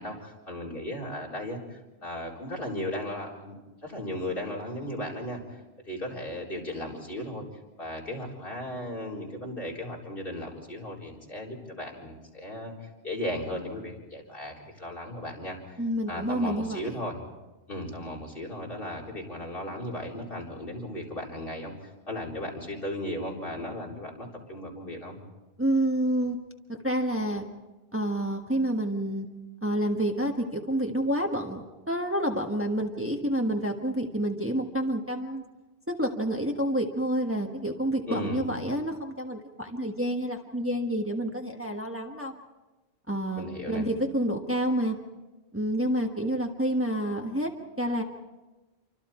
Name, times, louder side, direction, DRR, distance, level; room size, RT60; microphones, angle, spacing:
voice 1, 0.0-3.5 3.8-5.6 5.9-7.4 7.8-15.8 16.1-17.2 17.7-25.2 38.1-38.5 43.4-43.9, left 1 dB, 60° left, -1 dB, 4.6 m, -36 dB
voice 2, 15.8-17.0 25.6-26.4 26.7-27.4 27.9-29.3 29.6-35.4 36.0-42.3 43.1-45.0 45.5-47.5 47.8-48.0, right 1 dB, 10° right, 2 dB, 1.4 m, -28 dB
28.5 x 25.0 x 4.4 m, 1.1 s
omnidirectional pair, 1.1 m